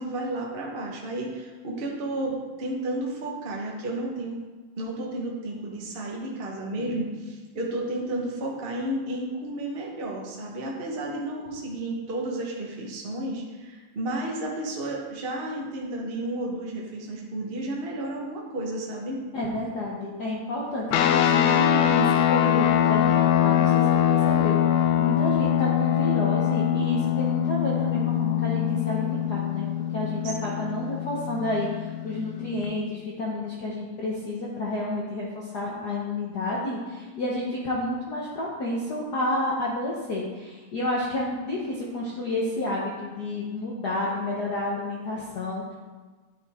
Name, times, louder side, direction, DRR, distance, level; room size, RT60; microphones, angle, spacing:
voice 1, 0.0-4.4 4.8-19.2 30.2-30.5, right 1 dB, 90° right, -2 dB, 0.5 m, -32 dB
voice 2, 19.3-29.7 29.9-45.8, left 1 dB, 70° left, -4 dB, 0.9 m, -30 dB
sound 1, 20.9-32.6, left 10 dB, 90° left, 2.0 m, -23 dB
10.5 x 5.6 x 3.6 m, 1.3 s
omnidirectional pair, 3.4 m